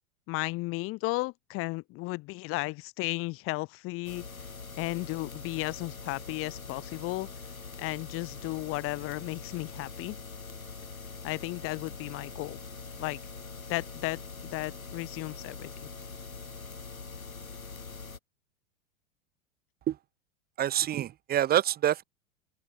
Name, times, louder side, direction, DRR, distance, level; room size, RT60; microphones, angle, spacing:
voice 1, 0.3-4.2 4.8-7.3 7.8-10.2 11.2-12.6 13.0-13.2 13.7-14.2 14.5-15.9, left 22 dB, 35° left, 1.0 m, -34 dB
sound 1, 4.0-18.2, left 4 dB, 85° left, 2.1 m, -43 dB
voice 2, 20.6-22.0, right 11 dB, 25° right, 1.0 m, -26 dB
figure-of-eight pair, 90°, 41 cm